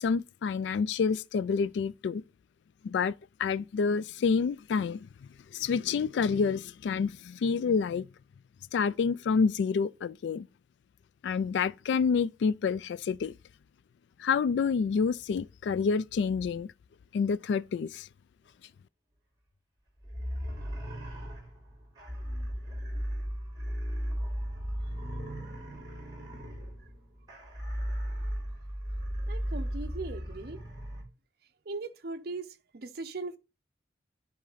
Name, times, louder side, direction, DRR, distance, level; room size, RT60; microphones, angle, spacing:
voice 1, 0.0-2.2 2.8-3.1 3.4-5.0 5.5-8.1 8.7-10.5 11.2-13.3 14.2-16.7 17.1-18.0, left 5 dB, 80° left, 0.3 m, -28 dB
sound 1, 20.0-31.0, equal, 20° right, 4.9 m, -36 dB
voice 2, 29.3-30.6 31.7-33.4, right 3 dB, 60° right, 0.7 m, -39 dB
10.5 x 3.8 x 4.0 m
head